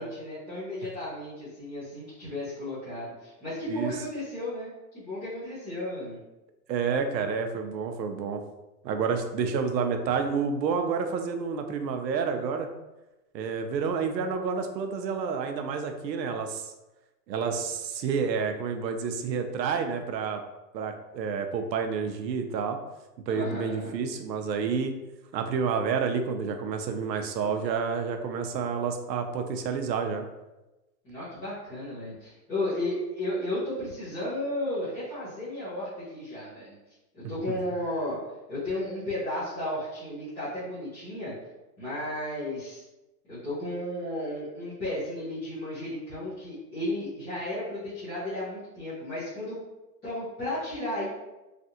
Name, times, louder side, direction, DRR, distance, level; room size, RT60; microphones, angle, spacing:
voice 1, 0.0-6.2 23.3-24.0 31.0-36.7 37.1-38.2 38.5-41.3 41.8-42.8 43.3-49.6 50.0-51.1, left 1 dB, 10° left, -15 dB, 0.7 m, -34 dB
voice 2, 6.7-8.4 8.8-12.7 13.3-16.7 17.3-20.4 20.7-22.8 23.3-24.9 25.3-30.3 37.5-37.6, right 5 dB, 85° right, 6 dB, 0.7 m, -29 dB
3.2 x 2.5 x 2.7 m, 1.0 s
hypercardioid pair, 165°, 50 cm